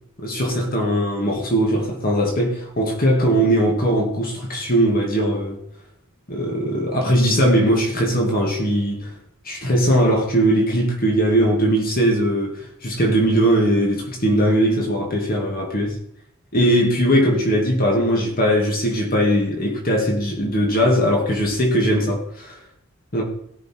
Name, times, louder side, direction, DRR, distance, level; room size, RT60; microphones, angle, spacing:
voice 1, 0.2-5.6 6.3-9.1 9.4-16.0 16.5-22.6 23.1-23.2, equal, 45° left, 0 dB, 2.5 m, -20 dB
17.5 x 6.4 x 4.6 m, 0.71 s
head